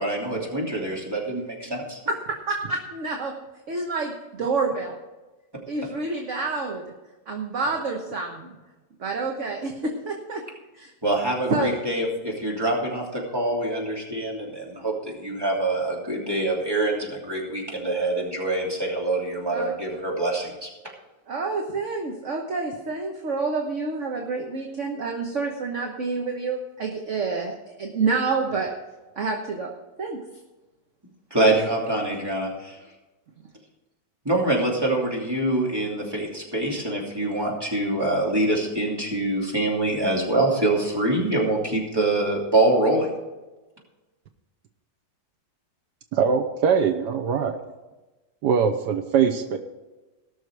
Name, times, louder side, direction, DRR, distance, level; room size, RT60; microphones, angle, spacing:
voice 1, 0.0-2.0 11.0-20.7 31.3-32.8 34.2-43.1, right 2 dB, 15° right, -3 dB, 2.8 m, -25 dB
voice 2, 2.5-3.3 3.7-4.1 4.4-5.0 5.7-6.8 7.3-8.5 9.0-10.4 10.7-10.9 11.5-11.7 19.5-19.8 21.3-28.7 29.2-29.7 30.0-30.2, right 4 dB, 50° right, 1 dB, 1.4 m, -28 dB
voice 3, 46.1-47.6 48.4-49.6, right 6 dB, 80° right, 6 dB, 1.4 m, -22 dB
18.5 x 6.4 x 4.7 m, 1.1 s
omnidirectional pair, 1.8 m